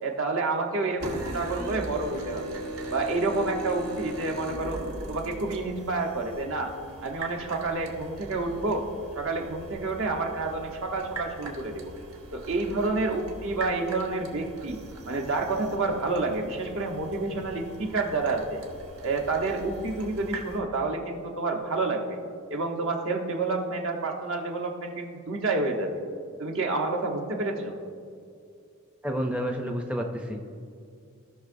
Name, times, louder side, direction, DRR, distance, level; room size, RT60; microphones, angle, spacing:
voice 1, 0.0-2.6 2.9-4.8 5.1-6.7 7.0-8.9 9.1-11.9 12.3-14.8 15.1-18.6 19.0-22.2 22.5-26.0 26.4-27.7, right 3 dB, 65° right, 2 dB, 1.0 m, -29 dB
sound 1, 1.0-20.6, right 1 dB, 90° right, 1.2 m, -40 dB
voice 2, 29.0-30.4, equal, 5° right, 2 dB, 0.5 m, -30 dB
16.5 x 5.9 x 2.6 m, 2.3 s
head